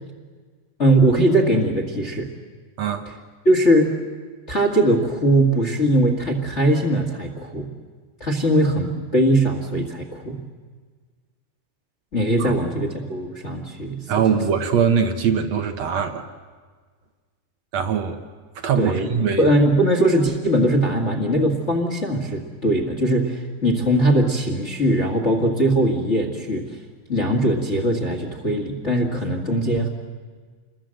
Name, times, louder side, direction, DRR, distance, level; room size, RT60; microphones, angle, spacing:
voice 1, 0.8-2.3 3.4-3.9 4.5-7.7 8.2-10.4 12.1-14.3 18.8-26.6 27.1-29.9, right 1 dB, 30° left, 2 dB, 1.4 m, -20 dB
voice 2, 2.8-3.1 12.4-12.5 14.1-16.3 17.7-18.2 18.6-19.5, right 7 dB, 65° right, 8 dB, 1.9 m, -22 dB
28.0 x 21.5 x 7.6 m, 1.5 s
omnidirectional pair, 4.2 m